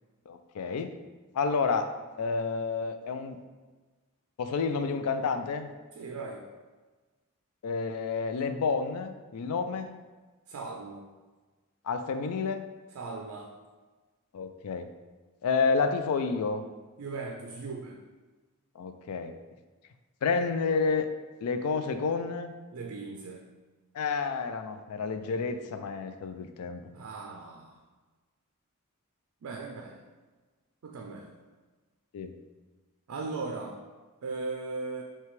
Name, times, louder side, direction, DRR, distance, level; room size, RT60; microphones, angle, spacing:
voice 1, 0.3-0.9 1.3-3.4 4.4-5.7 7.6-9.9 11.9-12.6 14.3-14.9 15.4-16.6 18.8-19.3 20.2-21.1 21.4-22.5 23.9-26.8 32.1-32.3, left 4 dB, 85° left, 8 dB, 0.4 m, -30 dB
voice 2, 6.0-6.5 10.5-11.0 12.9-13.5 17.0-18.0 22.7-23.4 26.9-27.7 29.4-30.0 30.8-31.3 33.1-33.8 34.2-35.0, right 3 dB, 65° right, 2 dB, 0.4 m, -38 dB
5.7 x 2.3 x 3.2 m, 1.3 s
head